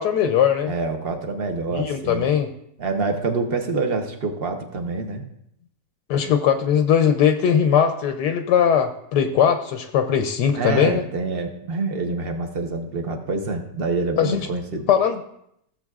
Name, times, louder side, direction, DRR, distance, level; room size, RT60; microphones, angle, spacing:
voice 1, 0.0-0.7 1.7-2.5 6.1-11.0 14.2-14.5 14.9-15.2, left 8 dB, 75° left, 7 dB, 1.2 m, -20 dB
voice 2, 0.7-2.3 2.8-5.2 10.5-14.8, right 3 dB, 40° right, 4 dB, 0.9 m, -26 dB
15.5 x 7.4 x 2.4 m, 0.75 s
omnidirectional pair, 1.9 m